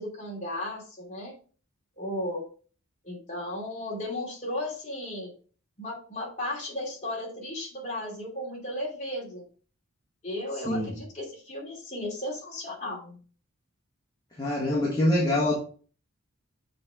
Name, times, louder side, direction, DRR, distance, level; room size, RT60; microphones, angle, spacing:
voice 1, 0.0-1.3 2.0-2.4 3.0-5.3 5.8-9.4 10.2-13.2, left 1 dB, 35° left, 2.7 m, -35 dB
voice 2, 14.4-15.5, left 1 dB, 20° left, 1.4 m, -24 dB
6.8 x 4.2 x 4.8 m
head